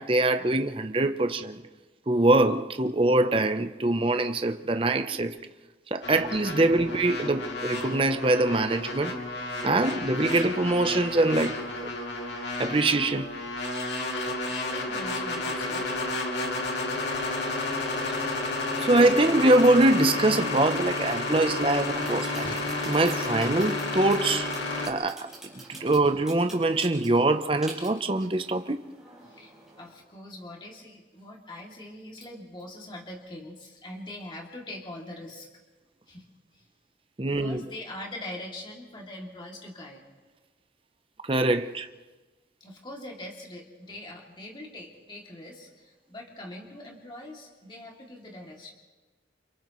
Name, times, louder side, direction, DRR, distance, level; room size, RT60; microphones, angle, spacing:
voice 1, 0.0-1.6 2.1-5.4 5.9-9.2 9.6-11.9 12.6-13.3 18.8-22.4 22.9-24.5 24.9-28.9 37.2-37.6 41.2-41.9, right 2 dB, 30° right, 0.7 m, -24 dB
sound 1, 6.0-24.9, left 2 dB, 80° left, 2.5 m, -31 dB
voice 2, 14.5-15.9 22.4-22.6 29.2-35.5 36.1-36.2 36.5-36.7 37.2-40.0 42.6-48.7, left 1 dB, 25° left, 2.6 m, -42 dB
sound 2, 21.3-29.9, right 2 dB, 5° right, 7.0 m, -47 dB
29.0 x 29.0 x 3.1 m
head